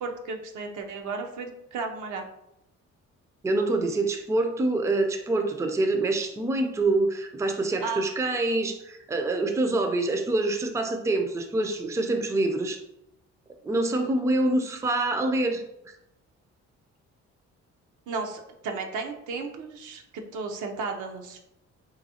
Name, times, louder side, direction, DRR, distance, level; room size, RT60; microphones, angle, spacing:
voice 1, 0.0-2.3 7.8-8.0 18.1-21.4, right 4 dB, 80° right, 3 dB, 0.7 m, -34 dB
voice 2, 3.4-12.8 13.6-15.6, right 2 dB, 10° right, 5 dB, 0.4 m, -26 dB
3.9 x 2.6 x 2.7 m, 0.84 s
cardioid pair, 90°, 30 cm